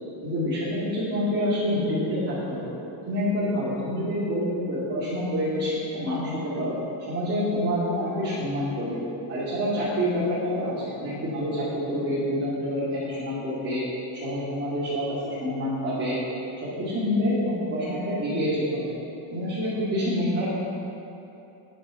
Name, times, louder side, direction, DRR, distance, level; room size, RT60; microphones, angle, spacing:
voice 1, 0.2-2.7 3.1-6.8 7.1-9.0 9.3-13.8 14.1-16.2 16.6-18.9 19.3-20.5, equal, 30° right, -11 dB, 2.7 m, -27 dB
9.1 x 7.8 x 5.9 m, 2.9 s
cardioid pair, 145°, 49 cm